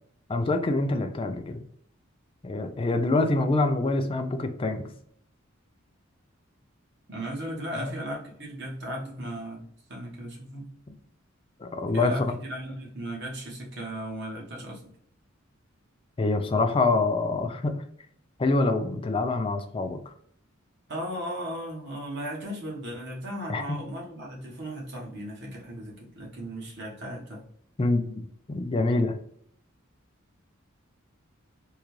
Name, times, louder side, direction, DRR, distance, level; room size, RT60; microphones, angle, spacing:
voice 1, 0.3-1.6 2.4-4.9 7.7-7.9 10.9-11.0 11.6-12.4 16.2-17.8 18.4-20.1 23.5-23.8 27.8-29.1, left 2 dB, 25° left, 6 dB, 0.4 m, -26 dB
voice 2, 7.1-10.7 11.9-14.8 20.9-27.5, right 1 dB, 55° right, -2 dB, 1.2 m, -36 dB
3.7 x 2.3 x 3.1 m, 0.67 s
head